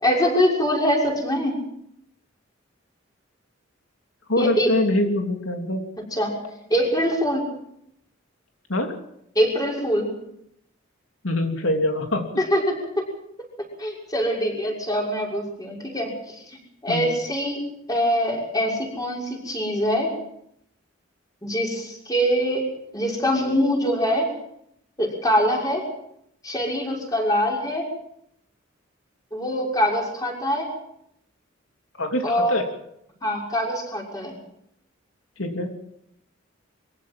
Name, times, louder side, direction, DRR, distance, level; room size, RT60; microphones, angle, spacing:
voice 1, 0.0-1.6 4.4-4.7 6.1-6.3 6.7-7.5 9.3-10.1 12.4-13.1 13.6-16.6 16.8-17.6 17.9-20.1 21.4-22.6 22.9-24.3 25.0-25.8 26.4-27.8 29.3-30.7 32.2-32.6 33.2-34.4, equal, 20° left, -1 dB, 6.2 m, -23 dB
voice 2, 4.3-5.8 8.7-8.9 11.2-12.3 16.9-17.1 32.0-32.7 35.4-35.7, left 1 dB, 90° left, 3 dB, 3.1 m, -24 dB
24.0 x 16.0 x 7.7 m, 0.76 s
head